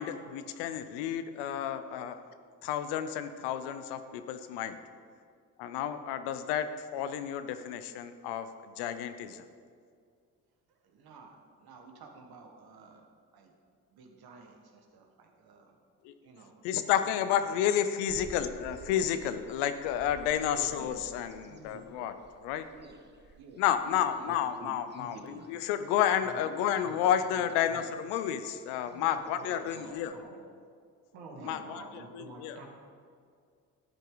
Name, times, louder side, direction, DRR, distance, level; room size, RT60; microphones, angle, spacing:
voice 1, 0.0-2.2 2.6-4.8 5.6-8.5 8.8-9.4 16.0-16.1 16.6-22.1 22.4-22.7 23.6-30.2 31.4-32.6, left 9 dB, 85° left, 10 dB, 0.7 m, -31 dB
voice 2, 10.7-13.5 13.9-15.8 16.2-16.6 17.0-17.7 20.8-21.0 22.7-23.0 23.4-24.6 29.4-29.7 31.4-31.6, right 4 dB, 65° right, 3 dB, 1.7 m, -53 dB
sound 1, 18.1-30.2, right 4 dB, 25° right, 1.1 m, -55 dB
voice 3, 20.5-21.0 21.5-22.1 24.3-25.6 26.2-28.0 28.8-30.4 31.1-32.6, right 2 dB, 85° right, -1 dB, 2.1 m, -49 dB
11.5 x 9.1 x 4.0 m, 2.2 s
supercardioid pair, 55°, 40 cm